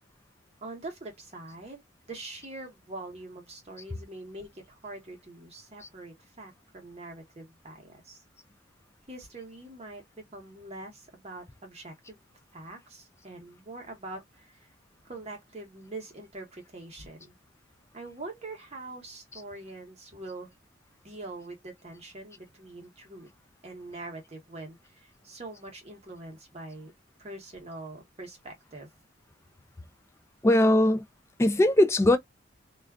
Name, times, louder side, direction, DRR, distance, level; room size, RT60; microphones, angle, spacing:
voice 1, 0.6-8.2 9.1-12.2 12.5-14.7 15.0-17.3 17.9-20.5 21.0-23.3 23.6-26.9 27.2-28.9, right 2 dB, 30° right, 0.9 m, -43 dB
voice 2, 30.4-31.0 31.4-32.2, left 1 dB, 15° left, 0.3 m, -20 dB
2.4 x 2.3 x 2.3 m
head